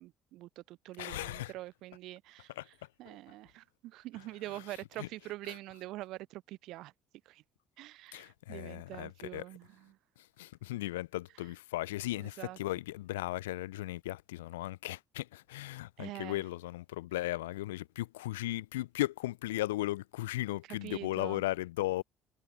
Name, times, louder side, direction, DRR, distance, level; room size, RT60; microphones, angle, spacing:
voice 1, 0.0-2.5 3.0-6.9 7.3-7.4 7.8-10.0 12.2-12.6 16.0-16.4 20.7-21.4, right 17 dB, 60° right, 0.3 m, -45 dB
voice 2, 1.0-1.5 2.6-2.7 3.1-3.2 5.0-5.1 8.1-9.4 10.2-22.0, left 17 dB, 75° left, 0.5 m, -36 dB
figure-of-eight pair, 55°, 0 cm